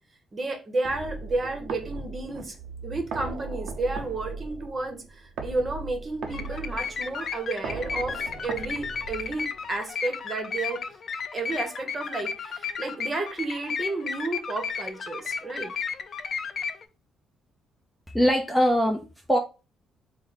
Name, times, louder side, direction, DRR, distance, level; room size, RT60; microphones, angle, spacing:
voice 1, 0.3-2.6 2.8-10.8 11.3-15.7, right 2 dB, 35° right, 0.9 m, -32 dB
sound 1, 0.8-9.8, right 4 dB, 75° right, 0.6 m, -38 dB
sound 2, 6.3-16.8, left 6 dB, 50° left, 0.4 m, -34 dB
voice 2, 18.1-19.4, equal, 5° left, 0.6 m, -22 dB
3.2 x 2.1 x 3.9 m
cardioid pair, 90°, 0 cm